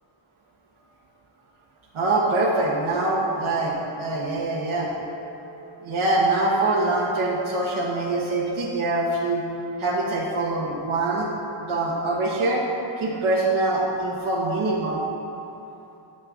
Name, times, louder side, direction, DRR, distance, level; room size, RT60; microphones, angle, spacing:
voice 1, 1.9-9.4 9.8-11.3 11.6-12.6 13.0-15.0, right 2 dB, 85° right, -4 dB, 1.0 m, -24 dB
12.0 x 7.6 x 2.3 m, 2.9 s
wide cardioid pair, 145°, 47 cm